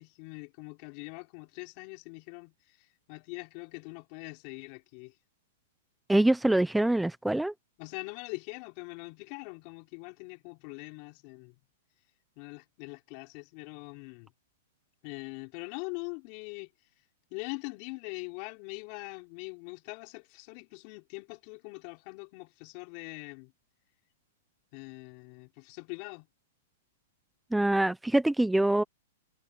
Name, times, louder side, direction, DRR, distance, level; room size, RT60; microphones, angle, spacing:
voice 1, 0.0-5.1 7.8-11.6 12.4-14.3 15.0-16.7 17.3-23.5 24.7-26.3, left 31 dB, 40° left, 5.8 m, -43 dB
voice 2, 6.1-7.5 27.5-28.8, right 1 dB, 5° right, 0.8 m, -24 dB
hypercardioid pair, 160°, 0 cm